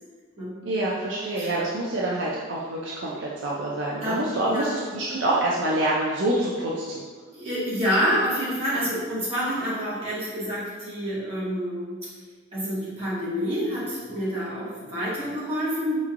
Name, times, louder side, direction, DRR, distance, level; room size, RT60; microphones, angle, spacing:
voice 1, 0.7-7.0, right 1 dB, 65° right, -5 dB, 0.5 m, -26 dB
voice 2, 4.0-4.8 7.3-12.0 12.5-16.0, equal, 30° right, -10 dB, 1.3 m, -28 dB
4.3 x 3.1 x 2.4 m, 1.5 s
head